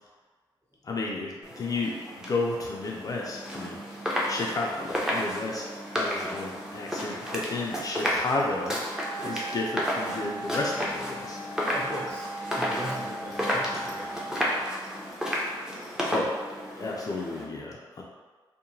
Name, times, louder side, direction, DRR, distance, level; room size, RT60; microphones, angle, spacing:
voice 1, 0.8-2.0 2.3-3.8 4.2-8.8 9.2-11.4 16.1-16.3 16.8-18.0, left 2 dB, 40° left, -2 dB, 0.4 m, -32 dB
sound 1, 1.4-17.4, equal, 5° right, 0.6 m, -32 dB
Wind instrument woodwind instrument, 8.9-14.5, right 1 dB, 70° right, 0.9 m, -39 dB
voice 2, 11.7-12.3 12.6-14.6, equal, 25° right, -8 dB, 1.2 m, -39 dB
2.8 x 2.1 x 2.6 m, 1.4 s
cardioid pair, 85°, 9 cm